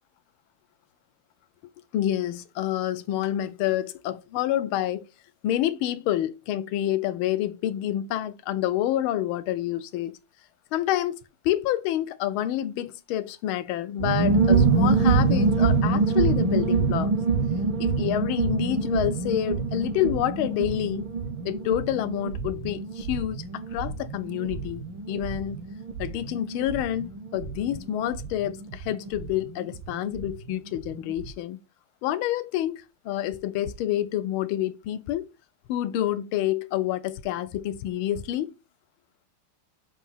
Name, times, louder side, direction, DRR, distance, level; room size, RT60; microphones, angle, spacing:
voice 1, 1.9-5.1 5.4-10.2 10.7-11.2 11.4-17.1 17.8-21.1 21.4-25.6 26.0-31.6 32.0-35.3 35.7-38.5, left 12 dB, 80° left, 1.4 m, -28 dB
sound 1, 14.0-30.3 30.5-30.6 30.9-31.3, right 4 dB, 70° right, 1.7 m, -26 dB
6.7 x 2.7 x 5.6 m
omnidirectional pair, 2.3 m